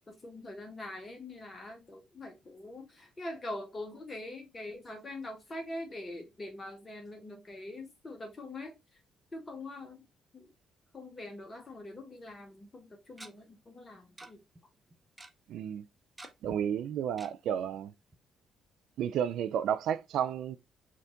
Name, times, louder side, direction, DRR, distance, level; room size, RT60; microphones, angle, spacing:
voice 1, 0.1-8.8 9.3-10.0 10.3-10.5 10.9-14.4, left 1 dB, 30° left, 1.0 m, -43 dB
Tick-tock, 12.3-12.4 13.2-13.3 14.2-14.3 14.5-14.6 14.9-15.3 16.2-16.6 17.2-17.3 17.7-17.8 18.1-18.2, right 2 dB, 15° right, 0.7 m, -48 dB
voice 2, 15.5-15.8 16.4-17.9 19.0-20.6, right 9 dB, 65° right, 0.4 m, -32 dB
4.5 x 2.4 x 3.7 m
hypercardioid pair, 45°, 0 cm